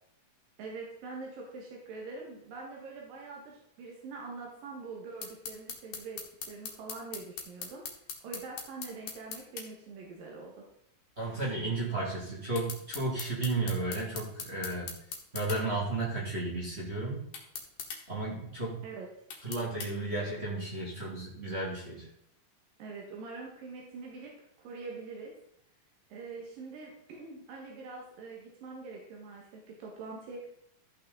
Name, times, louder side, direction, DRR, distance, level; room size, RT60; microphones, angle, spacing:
voice 1, 0.6-6.2 6.5-7.8 8.2-10.5 18.8-19.1 22.8-24.3 24.6-25.3 26.1-30.5, right 4 dB, 90° right, -1 dB, 3.3 m, -44 dB
sound 1, 5.2-9.7 12.5-15.6 17.3-18.0 19.3-19.9, left 6 dB, 60° left, 2.4 m, -40 dB
voice 2, 11.2-14.9 15.3-17.2 18.1-18.8 19.4-22.1, right 2 dB, 20° right, -5 dB, 2.2 m, -33 dB
13.5 x 5.8 x 3.9 m, 0.74 s
omnidirectional pair, 3.9 m